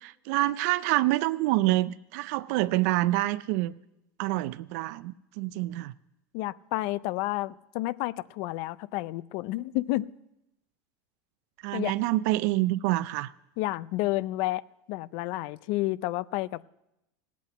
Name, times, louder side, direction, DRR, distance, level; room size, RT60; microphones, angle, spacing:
voice 1, 0.0-3.7 4.2-5.9 11.6-13.3, right 17 dB, 65° right, 15 dB, 0.4 m, -27 dB
voice 2, 6.3-10.1 11.7-11.9 13.6-14.6 14.9-16.6, left 18 dB, 60° left, 19 dB, 0.4 m, -30 dB
16.5 x 8.4 x 7.8 m, 0.90 s
supercardioid pair, 135°, 9 cm